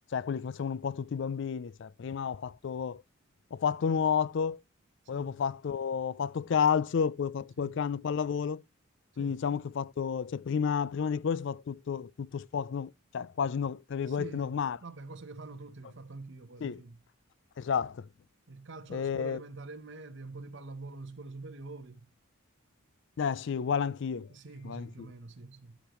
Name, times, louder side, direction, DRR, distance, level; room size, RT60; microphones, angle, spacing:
voice 1, 0.1-3.0 3.5-4.6 5.1-8.6 9.2-14.8 16.6-16.8 17.6-18.1 18.9-19.4 23.2-24.3 24.6-25.1, left 6 dB, 55° left, 0.3 m, -31 dB
voice 2, 14.1-17.0 18.5-22.1 24.3-25.8, right 3 dB, 55° right, 0.9 m, -45 dB
13.0 x 5.3 x 3.0 m
head